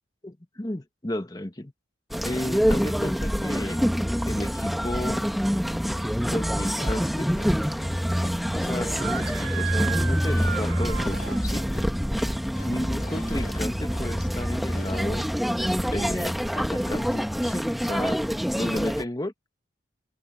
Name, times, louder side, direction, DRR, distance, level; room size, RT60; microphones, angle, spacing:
voice 1, 0.2-1.7 2.2-3.8 4.3-5.2 6.3-7.3 8.5-11.6 12.6-15.2 15.7-18.2 18.6-19.3, left 1 dB, 20° left, 1.2 m, -33 dB
sound 1, 2.1-19.0, equal, ahead, 1.0 m, -26 dB
sound 2, 6.6-7.5 7.8-9.6 10.0-11.5 11.7-11.8 12.2-14.0 14.4-15.1, left 3 dB, 45° left, 4.6 m, -46 dB
Screaming, 8.9-11.7, right 8 dB, 85° right, 1.3 m, -34 dB
open air
head